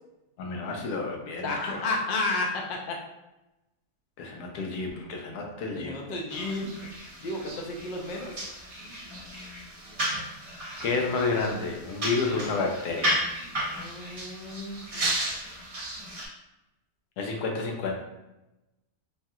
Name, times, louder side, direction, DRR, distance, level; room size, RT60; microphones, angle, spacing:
voice 1, 0.4-1.8 4.2-6.0 10.8-13.2 17.2-17.9, left 4 dB, 85° left, 1 dB, 1.2 m, -30 dB
voice 2, 1.4-3.0 5.7-6.7 7.2-8.4 13.7-14.9, left 2 dB, 70° left, 0 dB, 0.5 m, -32 dB
sound 1, 6.3-16.3, right 1 dB, 55° right, 0.3 m, -34 dB
3.1 x 2.7 x 2.3 m, 0.96 s
omnidirectional pair, 1.6 m